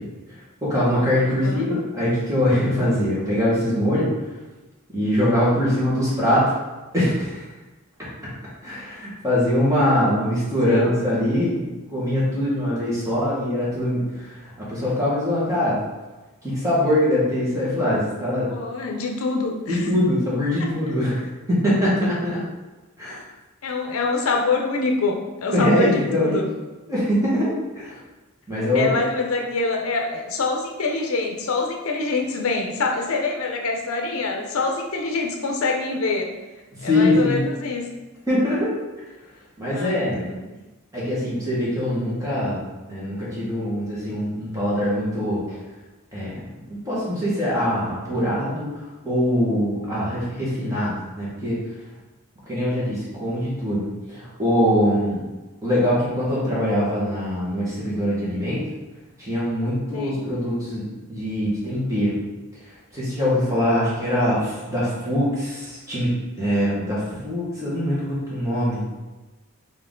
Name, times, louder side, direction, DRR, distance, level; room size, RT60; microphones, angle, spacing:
voice 1, 0.6-4.1 4.9-6.5 6.9-7.3 8.6-14.4 14.7-15.8 16.4-18.5 19.7-22.4 23.0-23.2 25.5-26.4 26.9-28.0 28.5-28.9 36.7-37.4 38.3-38.7 39.6-40.2 40.9-42.6 42.9-45.6 46.1-46.4 46.9-48.7 49.0-51.6 52.5-55.2 55.6-58.6 59.2-62.2 62.9-66.1 66.4-68.9, left 1 dB, 15° right, -8 dB, 1.5 m, -23 dB
voice 2, 1.3-1.6 10.6-10.9 18.5-19.9 23.6-26.5 28.7-36.3 36.8-37.8 39.7-40.5 59.9-60.2, left 3 dB, 75° left, 1 dB, 0.6 m, -25 dB
4.5 x 2.8 x 3.7 m, 1.2 s
head